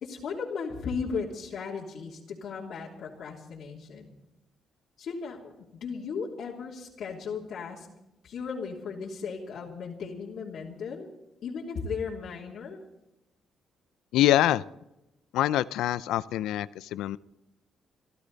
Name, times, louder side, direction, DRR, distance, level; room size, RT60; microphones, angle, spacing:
voice 1, 0.0-4.1 5.0-7.9 8.2-11.1 11.4-12.8, left 5 dB, 70° left, -4 dB, 3.0 m, -36 dB
voice 2, 14.1-14.6 15.3-17.2, left 13 dB, 90° left, 18 dB, 0.5 m, -25 dB
26.5 x 13.0 x 4.1 m, 0.91 s
cardioid pair, 90°, 0 cm